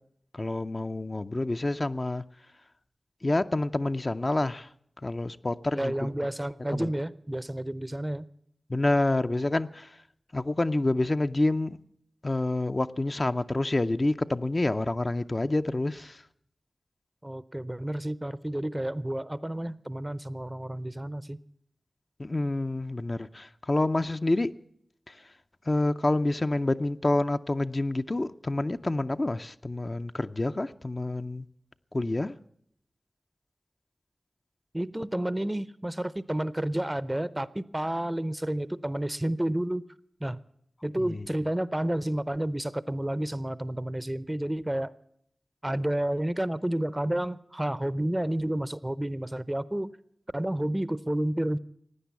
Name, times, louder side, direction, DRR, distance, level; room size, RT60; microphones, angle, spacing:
voice 1, 0.3-2.2 3.2-4.7 5.0-6.1 6.7-6.9 8.7-9.9 10.3-11.8 12.2-16.2 22.2-24.6 25.1-25.2 25.7-31.5 31.9-32.4 41.1-41.3, left 2 dB, 45° left, 0.5 m, -28 dB
voice 2, 5.7-8.3 17.2-21.4 34.7-39.8 40.2-40.4 40.8-44.9 45.6-49.9 50.3-51.6, right 1 dB, 20° right, 0.6 m, -30 dB
16.5 x 9.7 x 8.2 m
wide cardioid pair, 45°, 0 cm